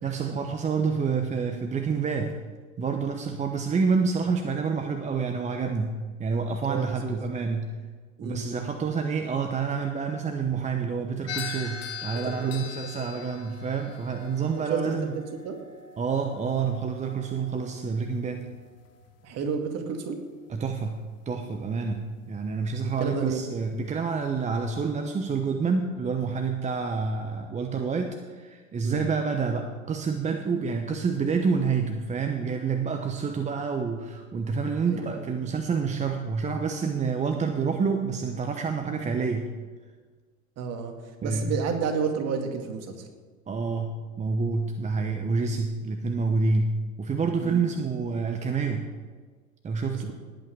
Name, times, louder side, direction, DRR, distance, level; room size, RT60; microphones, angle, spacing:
voice 1, 0.0-2.4 2.8-7.8 8.2-15.2 16.0-18.5 20.5-39.5 41.2-41.6 43.5-48.9 49.6-50.1, right 5 dB, 15° right, 5 dB, 0.9 m, -28 dB
voice 2, 6.6-7.2 8.2-8.5 12.2-12.6 12.8-13.2 14.6-15.0 15.4-15.6 19.2-20.2 22.8-23.4 28.8-29.0 34.9-35.2 40.6-40.9 41.2-43.1 47.4-47.7 49.9-50.1, right 6 dB, 40° right, 4 dB, 2.2 m, -31 dB
sound 1, 11.3-19.6, left 6 dB, 35° left, 1.9 m, -42 dB
19.0 x 8.6 x 4.9 m, 1.5 s
figure-of-eight pair, 85°, 41 cm